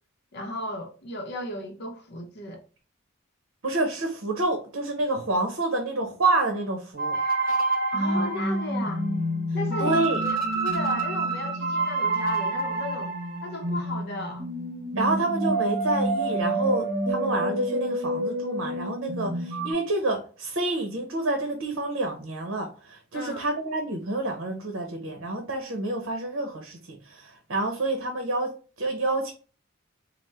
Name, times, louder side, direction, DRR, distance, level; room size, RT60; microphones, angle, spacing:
voice 1, 0.3-2.6 7.9-9.1 9.5-13.1 13.4-14.5 23.1-23.4, left 1 dB, 55° left, 0.7 m, -35 dB
voice 2, 3.6-7.2 9.8-10.2 14.9-29.3, right 2 dB, 75° right, 0.8 m, -28 dB
sound 1, 7.0-19.7, right 2 dB, 45° right, 1.1 m, -27 dB
4.1 x 2.1 x 3.3 m
head